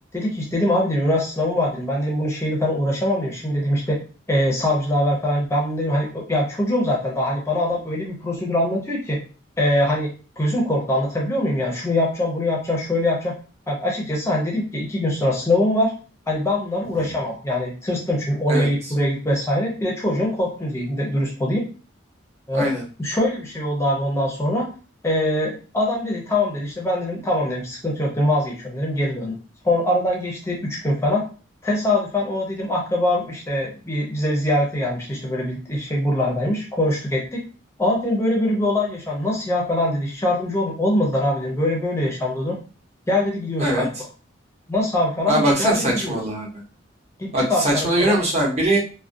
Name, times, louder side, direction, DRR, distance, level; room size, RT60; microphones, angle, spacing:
voice 1, 0.1-4.0 4.3-9.2 9.6-13.3 13.7-15.9 16.3-21.6 22.5-22.7 23.0-24.7 25.0-29.4 29.6-31.2 31.6-37.4 37.8-42.6 43.1-43.9 44.7-46.2 47.2-48.2, left 1 dB, 15° left, -2 dB, 0.5 m, -23 dB
voice 2, 22.5-22.8 43.6-43.9 45.3-46.5 47.3-48.8, right 1 dB, 35° right, -2 dB, 0.8 m, -21 dB
2.3 x 2.1 x 2.5 m, 0.35 s
head